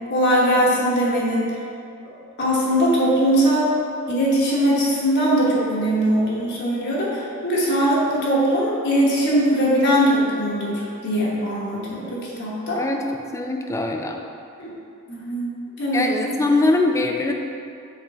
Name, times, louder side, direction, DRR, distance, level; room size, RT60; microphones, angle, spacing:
voice 1, 0.1-1.5 2.4-3.7 4.1-12.8 14.6-14.7 15.1-15.5 15.8-16.1, equal, 55° left, -6 dB, 1.1 m, -20 dB
voice 2, 13.3-14.2 15.9-17.3, left 2 dB, 15° left, 3 dB, 0.3 m, -22 dB
6.1 x 3.7 x 4.1 m, 2.5 s
head